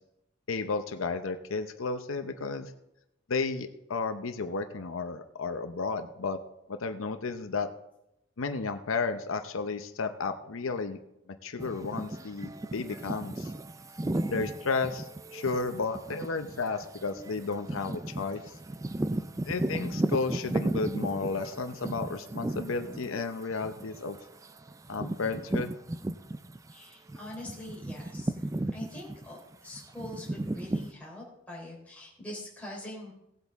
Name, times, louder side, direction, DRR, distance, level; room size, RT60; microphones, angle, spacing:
voice 1, 0.5-2.7 3.3-6.4 6.7-7.7 8.4-11.0 11.4-13.5 14.3-18.4 19.4-24.2 24.9-25.7, left 4 dB, 90° left, 8 dB, 0.7 m, -33 dB
sound 1, 11.6-26.7 27.1-30.9, right 1 dB, 15° right, 0.3 m, -35 dB
voice 2, 26.7-28.3 28.7-33.1, left 1 dB, 5° left, -4 dB, 3.3 m, -43 dB
17.5 x 8.1 x 3.6 m, 0.84 s
head